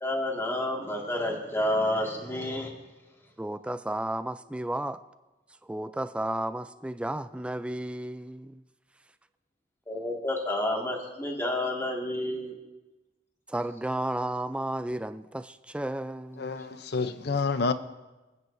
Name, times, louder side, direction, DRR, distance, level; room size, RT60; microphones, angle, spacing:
voice 1, 0.0-2.7 9.9-12.5, left 1 dB, 15° left, 1.9 m, -29 dB
voice 2, 3.4-5.0 5.6-8.6 13.5-16.5, right 1 dB, 5° right, 0.3 m, -33 dB
voice 3, 16.4-17.7, left 4 dB, 60° left, 0.6 m, -28 dB
26.0 x 9.4 x 2.6 m
head